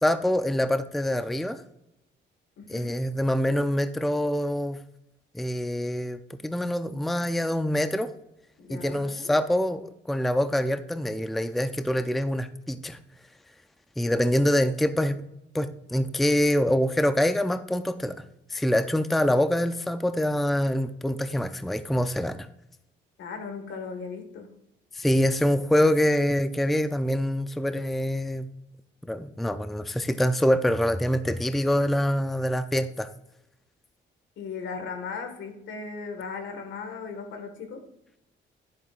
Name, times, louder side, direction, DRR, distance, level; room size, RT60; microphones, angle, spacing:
voice 1, 0.0-1.6 2.7-4.8 5.3-8.1 8.7-13.0 14.0-15.2 15.5-18.1 18.5-22.5 24.9-28.5 29.1-33.1, equal, ahead, 10 dB, 0.5 m, -25 dB
voice 2, 2.6-2.9 8.6-9.3 23.2-24.6 34.4-37.8, left 5 dB, 75° left, 6 dB, 1.8 m, -37 dB
10.5 x 10.5 x 2.5 m, 0.84 s
cardioid pair, 90°, 20 cm